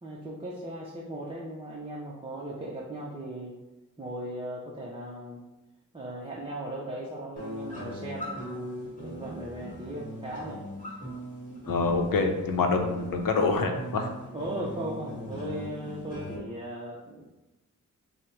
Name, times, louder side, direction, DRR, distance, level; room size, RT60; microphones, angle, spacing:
voice 1, 0.0-3.6 4.0-5.4 5.9-10.6 14.3-17.2, right 1 dB, 15° right, -5 dB, 0.5 m, -38 dB
sound 1, 7.4-16.4, equal, 25° left, 1.5 m, -39 dB
voice 2, 11.7-14.1, left 3 dB, 80° left, 4 dB, 0.6 m, -26 dB
5.0 x 2.1 x 4.4 m, 1.1 s
wide cardioid pair, 125°, 33 cm